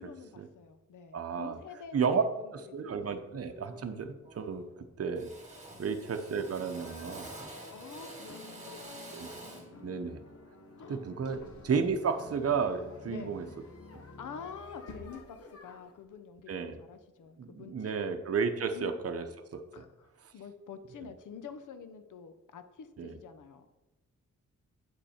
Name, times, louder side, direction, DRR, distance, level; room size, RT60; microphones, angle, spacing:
voice 1, 0.0-2.3 2.8-3.0 5.7-5.8 7.7-10.2 10.8-11.5 13.0-13.3 14.2-18.1 18.7-18.9 19.7-23.7, left 6 dB, 85° left, 9 dB, 0.7 m, -48 dB
voice 2, 1.1-1.6 1.9-2.2 2.5-5.3 5.8-7.3 9.1-9.3 9.8-10.2 10.9-13.4 13.9-14.0 16.5-16.8 17.4-19.2 19.5-19.8 23.0-23.2, right 6 dB, 50° right, 7 dB, 0.8 m, -32 dB
Drill, 2.8-3.1 3.5-4.0 4.2-4.8 5.1-9.8, right 2 dB, 25° right, 2.0 m, -48 dB
sound 1, 6.8-16.0, left 2 dB, 50° left, 1.0 m, -52 dB
sound 2, 9.8-16.0, left 2 dB, 70° left, 1.4 m, -55 dB
8.0 x 5.3 x 4.3 m, 1.0 s
cardioid pair, 80°, 30 cm